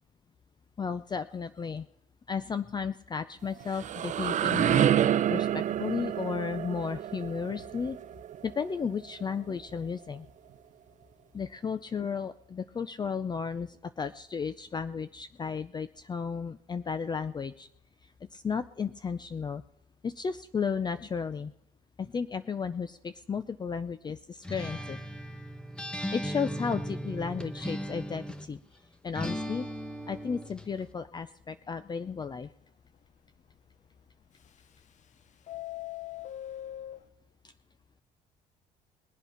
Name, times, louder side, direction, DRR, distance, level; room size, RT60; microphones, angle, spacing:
voice 1, 0.8-1.9 2.3-4.9 5.3-8.0 8.4-10.3 11.3-17.7 18.3-19.6 20.0-21.5 22.0-25.0 26.1-28.6 29.0-29.7 30.1-32.5 37.4-37.5, left 6 dB, 25° left, 12 dB, 0.5 m, -34 dB
sound 1, 3.4-9.2, right 10 dB, 45° right, 0.6 m, -28 dB
Acoustic guitar, 24.4-28.5 29.1-30.7, equal, 5° left, 1.1 m, -37 dB
Subway metro underground, 30.0-30.4 30.8-30.9 31.2-31.3 31.8-31.9 34.4-35.0 35.3-37.0, left 13 dB, 45° left, 0.8 m, -41 dB
21.0 x 8.1 x 5.7 m, 0.78 s
cardioid pair, 110°, 17 cm